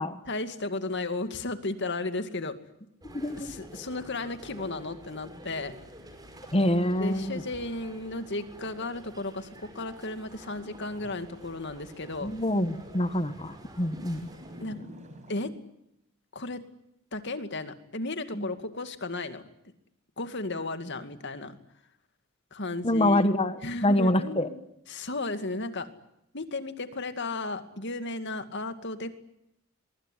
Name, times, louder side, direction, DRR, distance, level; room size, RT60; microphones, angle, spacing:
voice 1, 0.3-2.6 3.3-5.7 7.0-12.3 14.6-14.8 15.3-15.5 16.3-16.6 17.1-19.4 20.2-21.5 22.5-23.2 23.6-24.6 24.9-25.9 26.3-29.1, left 2 dB, 55° left, 9 dB, 2.3 m, -34 dB
sound 1, 3.0-14.6, equal, 20° right, 5.5 m, -49 dB
voice 2, 3.1-3.5 6.5-7.4 12.2-14.2 18.3-18.4 22.8-23.5 23.8-24.5, left 1 dB, 30° left, 11 dB, 1.3 m, -25 dB
sound 2, 5.3-15.3, equal, 35° right, 6.9 m, -53 dB
24.0 x 23.0 x 10.0 m, 0.80 s
head